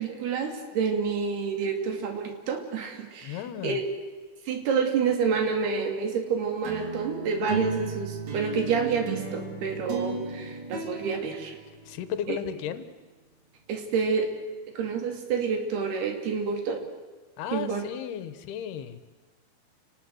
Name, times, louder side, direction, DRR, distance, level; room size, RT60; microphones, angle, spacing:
voice 1, 0.0-3.8 4.5-11.6 12.3-12.4 13.7-14.3 14.7-16.8 17.5-17.8, right 5 dB, 80° right, 4 dB, 4.6 m, -28 dB
voice 2, 3.2-3.8 11.9-12.9 17.4-19.0, left 9 dB, 80° left, 12 dB, 3.2 m, -34 dB
sound 1, 6.6-12.3, right 4 dB, 45° right, 4.8 m, -34 dB
29.0 x 19.0 x 7.9 m, 1.3 s
omnidirectional pair, 4.5 m